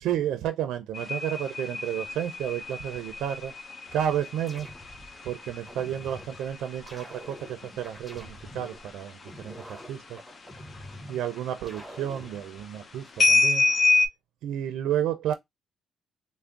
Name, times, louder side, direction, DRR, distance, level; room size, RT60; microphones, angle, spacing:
voice 1, 0.0-3.5 3.9-4.7 5.2-9.2 9.4-10.2 11.1-13.7 14.4-15.3, right 10 dB, 85° right, 0.5 m, -31 dB
sound 1, 0.9-9.2 9.5-10.0 10.3-11.5 11.8-12.4 13.2-14.1, left 3 dB, 35° left, 0.6 m, -28 dB
sound 2, 3.9-5.2 5.7-6.4 6.9-8.8 9.3-11.2 11.7-12.4, equal, ahead, 1.1 m, -46 dB
3.4 x 2.1 x 3.7 m
cardioid pair, 90°, 0 cm